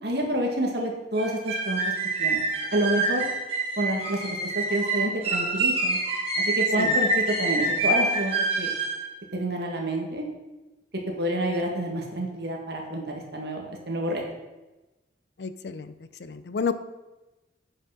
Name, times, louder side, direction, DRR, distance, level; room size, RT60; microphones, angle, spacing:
voice 1, 0.0-1.8 2.2-2.4 2.7-3.2 3.8-6.0 6.3-8.7 9.3-10.2 11.2-14.2, right 1 dB, 60° right, 1 dB, 1.8 m, -28 dB
sound 1, 1.2-9.0, right 2 dB, 30° right, 2.5 m, -26 dB
voice 2, 15.4-15.9 16.3-16.7, left 5 dB, 65° left, 12 dB, 0.5 m, -29 dB
8.6 x 5.6 x 5.8 m, 1.1 s
head